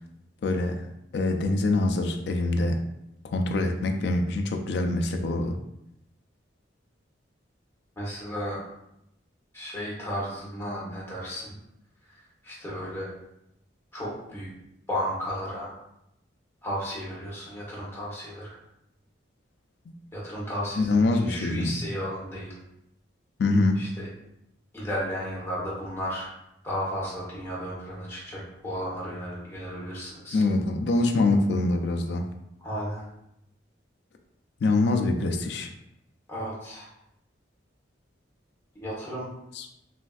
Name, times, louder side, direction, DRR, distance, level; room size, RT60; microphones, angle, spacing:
voice 1, 0.4-0.9 1.1-2.8 3.2-5.6 20.8-21.8 23.4-23.8 30.3-32.3 34.6-35.7 39.5-39.7, left 2 dB, 60° left, 5 dB, 0.3 m, -24 dB
voice 2, 8.0-8.6 9.5-11.6 12.1-13.1 13.9-14.5 14.9-15.7 16.6-18.6 20.1-22.6 23.8-24.1 24.7-26.3 26.6-30.4 32.6-33.1 36.3-36.9 38.7-39.3, equal, 15° left, -7 dB, 1.0 m, -34 dB
3.3 x 2.5 x 2.3 m, 0.81 s
head